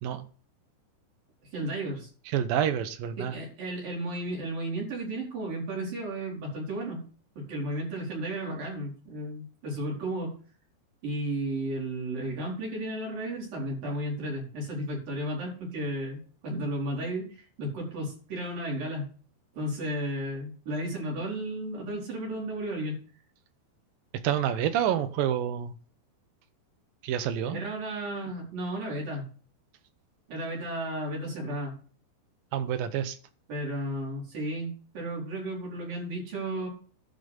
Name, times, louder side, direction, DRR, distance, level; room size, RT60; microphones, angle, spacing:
voice 1, 1.5-2.1 3.2-7.0 7.4-10.3 11.0-19.1 19.5-23.0 27.5-29.3 30.3-31.7 33.5-36.7, right 1 dB, 55° right, -3 dB, 6.0 m, -33 dB
voice 2, 2.3-3.4 24.2-25.7 27.0-27.6 32.5-33.2, right 9 dB, 75° right, 10 dB, 2.2 m, -28 dB
12.0 x 5.2 x 8.0 m, 0.40 s
omnidirectional pair, 5.0 m